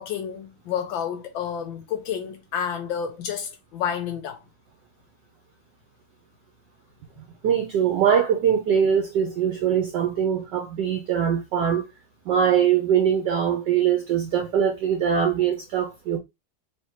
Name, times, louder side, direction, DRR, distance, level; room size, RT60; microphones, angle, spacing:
voice 1, 0.0-4.4, left 8 dB, 75° left, 1.2 m, -30 dB
voice 2, 7.4-11.9 12.3-16.2, right 8 dB, 70° right, 1.1 m, -22 dB
3.5 x 3.1 x 2.9 m
omnidirectional pair, 2.3 m